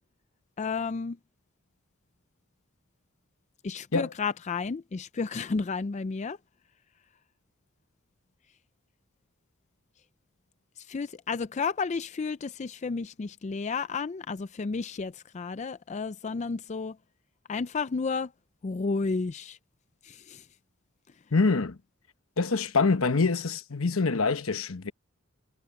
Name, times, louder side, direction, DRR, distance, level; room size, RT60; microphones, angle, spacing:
voice 1, 0.6-1.2 3.6-6.4 10.8-17.0 17.5-18.3 18.6-19.6 20.0-20.5, left 4 dB, 35° left, 0.4 m, -32 dB
voice 2, 21.3-21.8 22.4-24.9, left 4 dB, 80° left, 1.1 m, -25 dB
head